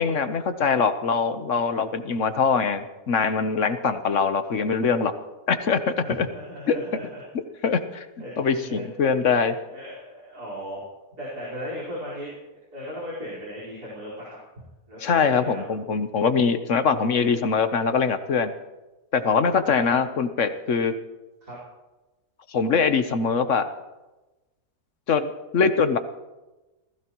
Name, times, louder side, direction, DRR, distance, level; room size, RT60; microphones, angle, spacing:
voice 1, 0.0-5.1 5.5-6.3 6.7-6.8 7.6-8.0 8.4-9.6 15.0-18.5 19.1-20.9 22.5-23.7 25.1-26.0, left 5 dB, 55° left, 10 dB, 1.2 m, -23 dB
voice 2, 6.0-7.2 8.2-8.8 9.7-10.8 11.2-12.3 12.7-14.4 14.9-15.7 19.6-20.1 21.4-21.6, equal, 90° right, -5 dB, 5.3 m, -37 dB
27.5 x 16.0 x 3.1 m, 1.1 s
omnidirectional pair, 1.6 m